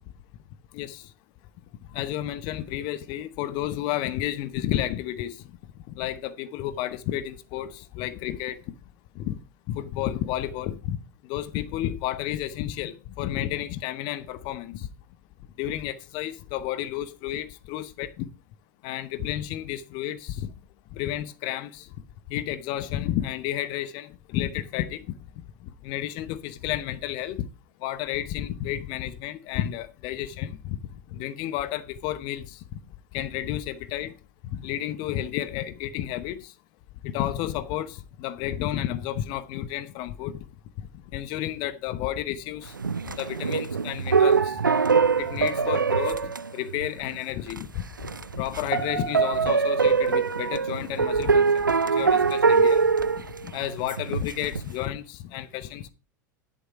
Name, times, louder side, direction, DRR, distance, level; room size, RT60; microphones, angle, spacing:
voice 1, 1.9-5.3 5.9-8.6 9.2-9.4 9.7-11.0 11.3-14.9 15.6-18.3 18.8-20.5 20.9-21.8 22.3-25.1 25.8-27.4 27.8-30.8 31.1-32.4 33.1-34.1 34.5-36.4 37.0-40.4 41.1-42.7 43.2-44.6 45.2-46.2 46.5-47.7 48.4-51.6 52.0-52.8 53.4-55.9, left 12 dB, 45° left, 0.9 m, -31 dB
sound 1, 42.8-47.2 47.5-47.6 48.0-54.6, right 5 dB, 85° right, 0.5 m, -23 dB
11.0 x 6.8 x 4.8 m
figure-of-eight pair, 85°, 10 cm